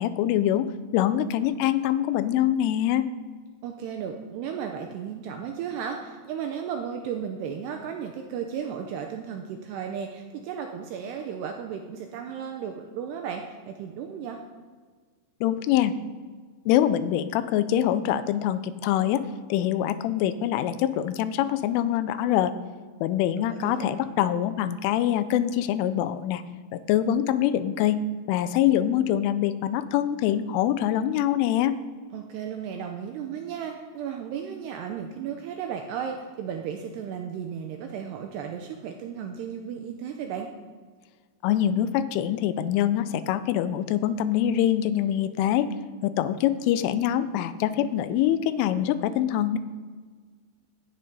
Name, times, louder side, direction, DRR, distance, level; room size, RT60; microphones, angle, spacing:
voice 1, 0.0-3.1 15.4-15.9 16.7-22.5 23.0-26.4 26.7-28.0 28.3-31.8 41.4-45.7 46.0-49.6, left 11 dB, 90° left, 12 dB, 3.1 m, -24 dB
voice 2, 3.6-14.4 23.3-23.9 24.2-24.3 32.1-40.5, right 7 dB, 80° right, 4 dB, 2.5 m, -34 dB
15.5 x 10.0 x 5.4 m, 1.5 s
omnidirectional pair, 5.6 m